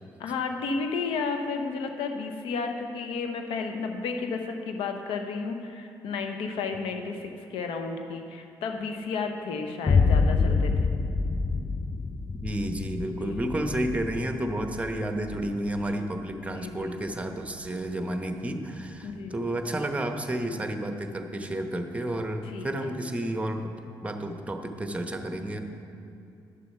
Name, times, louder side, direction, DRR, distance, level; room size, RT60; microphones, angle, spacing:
voice 1, 0.2-10.9 13.2-13.4 16.3-17.0 19.0-19.4 22.4-22.9, left 4 dB, 85° left, 5 dB, 0.9 m, -33 dB
Boom, 9.9-17.7, left 4 dB, 30° left, 0.5 m, -27 dB
voice 2, 12.3-23.7 24.0-25.6, right 1 dB, 15° right, 5 dB, 1.0 m, -31 dB
10.0 x 6.8 x 5.5 m, 2.7 s
supercardioid pair, 60°, 9 cm